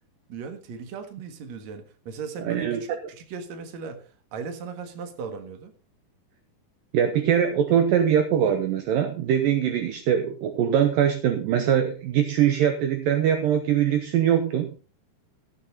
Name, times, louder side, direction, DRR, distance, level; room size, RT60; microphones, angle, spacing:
voice 1, 0.3-5.7, right 5 dB, 55° right, 7 dB, 2.4 m, -37 dB
voice 2, 2.4-2.8 6.9-14.7, right 9 dB, 75° right, 7 dB, 2.3 m, -22 dB
15.5 x 7.9 x 4.1 m, 0.37 s
omnidirectional pair, 4.6 m